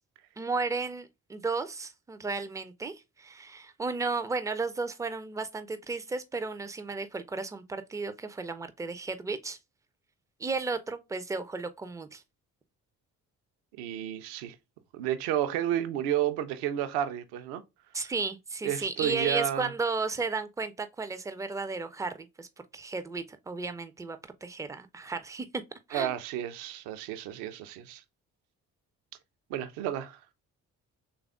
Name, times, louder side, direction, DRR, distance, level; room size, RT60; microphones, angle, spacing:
voice 1, 0.4-9.6 10.4-12.2 17.9-22.5 22.7-25.5 25.9-26.2, right 4 dB, 10° right, 0.3 m, -34 dB
voice 2, 13.8-14.6 14.9-17.6 18.6-19.7 25.9-28.0 29.5-30.2, right 11 dB, 65° right, 0.6 m, -31 dB
3.3 x 2.4 x 3.5 m
figure-of-eight pair, 40°, 43 cm